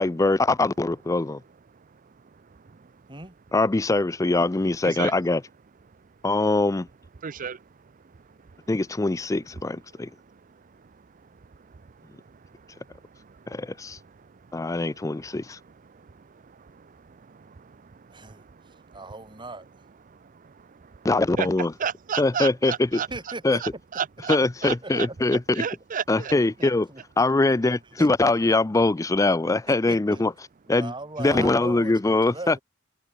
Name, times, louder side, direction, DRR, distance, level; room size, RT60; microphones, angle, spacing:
voice 1, 0.0-1.4 3.5-5.4 6.2-6.9 8.7-10.1 13.5-14.0 14.5-15.6 21.0-21.7 22.2-23.0 23.4-23.6 24.3-25.6 26.1-26.9 27.2-30.3 30.7-30.9 31.2-32.6, left 2 dB, 15° left, 0.4 m, -22 dB
voice 2, 1.7-2.9 4.8-5.1 7.2-7.6 8.1-8.7 9.9-19.0 20.1-21.1 21.4-21.5 21.8-23.3 23.6-25.1 25.5-26.3 26.6-26.7, right 7 dB, 40° right, 0.5 m, -36 dB
voice 3, 18.1-18.5 18.9-19.7 23.1-23.6 24.8-25.4 26.6-27.3 28.0-28.1 28.4-28.5 29.7-30.2 30.7-32.6, right 2 dB, 25° right, 5.5 m, -38 dB
head